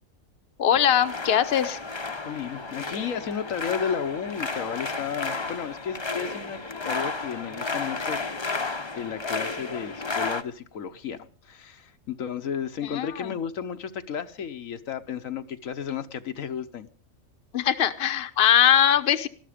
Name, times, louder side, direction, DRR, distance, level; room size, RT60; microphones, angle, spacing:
voice 1, 0.6-1.8 12.8-13.3 17.5-19.3, left 9 dB, 50° left, 9 dB, 1.1 m, -21 dB
sound 1, 0.8-10.4, left 3 dB, 25° left, 0.9 m, -32 dB
voice 2, 2.1-11.2 11.4-16.9, left 7 dB, 80° left, 8 dB, 1.4 m, -33 dB
19.5 x 13.5 x 5.1 m, 0.42 s
omnidirectional pair, 1.4 m